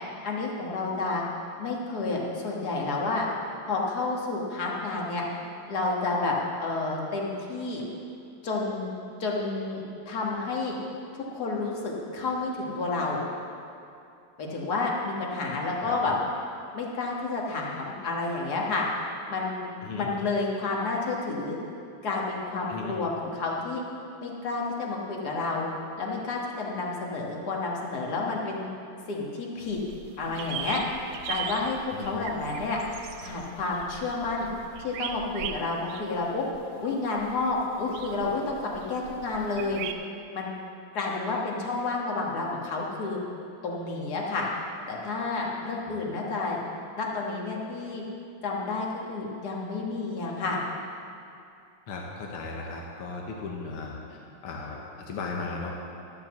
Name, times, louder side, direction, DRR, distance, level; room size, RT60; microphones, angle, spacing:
voice 1, 0.2-1.2 1.6-3.3 3.7-5.3 5.7-6.3 6.6-7.8 8.4-8.9 9.2-10.8 11.1-13.2 14.4-16.2 16.7-18.8 19.3-21.6 22.0-23.8 24.2-25.7 26.0-28.7 29.1-29.8 30.2-30.8 31.3-32.8 33.2-34.5 34.8-36.5 36.8-38.6 38.9-39.8 40.3-40.5 40.9-43.2 43.6-44.5 44.9-46.6 47.0-48.0 48.4-50.6, left 3 dB, 50° left, -2 dB, 1.9 m, -30 dB
sound 1, 29.6-39.9, right 9 dB, 80° right, 1.5 m, -40 dB
voice 2, 51.9-55.7, left 4 dB, 85° left, -1 dB, 2.0 m, -36 dB
12.5 x 6.2 x 7.3 m, 2.5 s
omnidirectional pair, 2.4 m